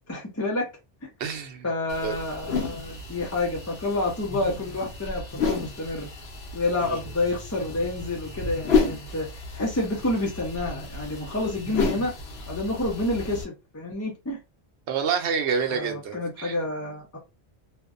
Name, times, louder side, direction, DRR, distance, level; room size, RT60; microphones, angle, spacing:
voice 1, 0.1-0.7 1.0-1.1 1.6-6.1 6.5-9.3 9.5-12.1 12.5-14.4 15.7-17.2, left 2 dB, 25° left, 0.4 m, -29 dB
voice 2, 1.2-1.7 2.0-2.1 6.8-7.0 14.9-16.5, right 6 dB, 80° right, 0.9 m, -28 dB
sound 1, 1.9-13.4, left 4 dB, 70° left, 0.9 m, -31 dB
2.5 x 2.1 x 2.4 m
omnidirectional pair, 1.1 m